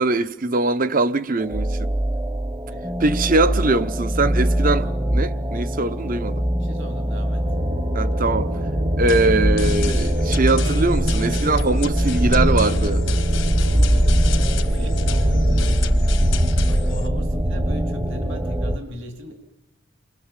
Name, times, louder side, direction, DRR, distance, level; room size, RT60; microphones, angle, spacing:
voice 1, 0.0-1.9 3.0-6.4 7.9-8.5 9.0-13.0, right 2 dB, 45° right, 0.9 m, -22 dB
sound 1, 1.4-18.8, equal, 15° right, 0.9 m, -21 dB
voice 2, 6.6-7.5 13.8-14.0 14.7-19.3, equal, 65° right, 3.1 m, -38 dB
sound 2, 7.5-15.8, right 3 dB, 85° right, 1.2 m, -35 dB
sound 3, 9.1-17.1, left 10 dB, 65° left, 1.3 m, -35 dB
30.0 x 25.5 x 7.5 m
head